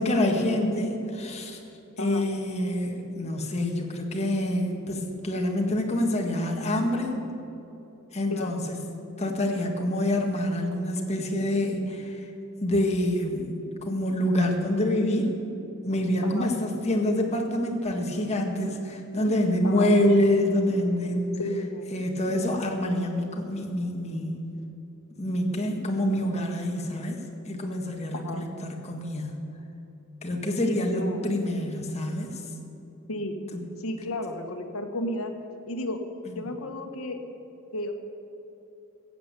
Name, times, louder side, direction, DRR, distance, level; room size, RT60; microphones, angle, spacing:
voice 1, 0.0-1.6 2.0-7.1 8.1-8.8 9.2-12.2 12.6-13.5 13.9-15.3 15.8-21.4 21.9-24.5 25.2-29.4 30.2-32.4 33.5-33.6, left 1 dB, 30° left, 1 dB, 1.7 m, -26 dB
voice 2, 2.0-2.3 8.3-8.6 16.2-16.5 19.6-19.9 21.4-21.9 28.1-28.5 30.6-31.3 33.1-33.4 33.8-35.3 35.7-36.0 36.3-37.2 37.7-37.9, left 1 dB, 70° left, 4 dB, 1.4 m, -33 dB
15.0 x 8.4 x 8.2 m, 2.9 s
head